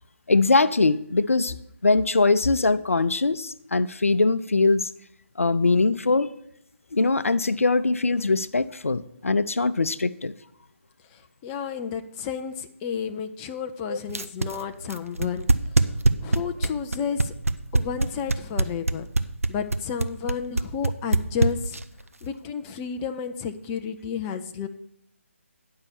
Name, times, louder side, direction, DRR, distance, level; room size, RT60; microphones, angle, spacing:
voice 1, 0.3-1.6 1.8-4.9 5.4-6.3 6.9-10.3 13.9-14.0, left 3 dB, 70° left, 14 dB, 0.6 m, -22 dB
voice 2, 11.1-17.3 17.7-19.1 19.5-21.8 22.2-24.7, left 7 dB, 15° left, 7 dB, 0.4 m, -32 dB
sound 1, 14.1-22.0, right 2 dB, 75° right, 0.7 m, -22 dB
9.7 x 5.6 x 6.9 m, 0.75 s
figure-of-eight pair, 150°, 8 cm